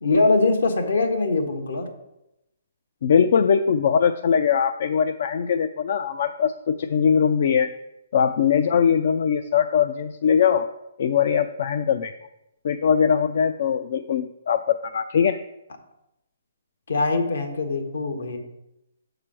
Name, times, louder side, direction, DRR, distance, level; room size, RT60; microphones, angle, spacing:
voice 1, 0.0-1.9 16.9-18.4, left 3 dB, 80° left, 3 dB, 1.5 m, -22 dB
voice 2, 3.0-7.7 8.1-10.7 11.0-12.1 12.6-15.4, left 7 dB, 60° left, 10 dB, 0.4 m, -21 dB
6.7 x 4.8 x 6.0 m, 0.87 s
hypercardioid pair, 150°, 0 cm